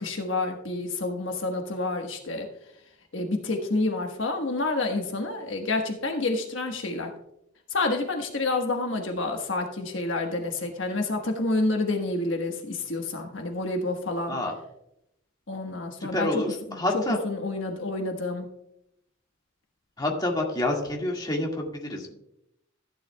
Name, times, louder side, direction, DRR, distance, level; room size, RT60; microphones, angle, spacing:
voice 1, 0.0-2.5 3.1-7.1 7.7-14.4 15.5-16.3 16.7-18.5, left 2 dB, 65° left, 3 dB, 1.3 m, -29 dB
voice 2, 16.0-17.2 20.0-22.1, left 1 dB, 20° left, 0 dB, 1.8 m, -28 dB
14.5 x 10.5 x 2.2 m, 0.79 s
head